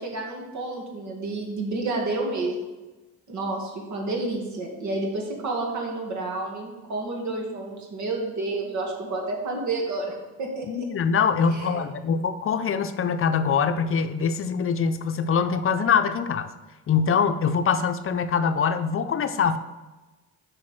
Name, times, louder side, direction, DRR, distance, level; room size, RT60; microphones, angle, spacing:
voice 1, 0.0-2.6 3.3-10.9 11.5-11.8, right 2 dB, 70° right, 0 dB, 2.1 m, -30 dB
voice 2, 10.7-16.5 16.9-19.6, left 6 dB, 45° left, 10 dB, 0.6 m, -23 dB
7.5 x 4.8 x 6.2 m, 1.2 s
cardioid pair, 90°, 30 cm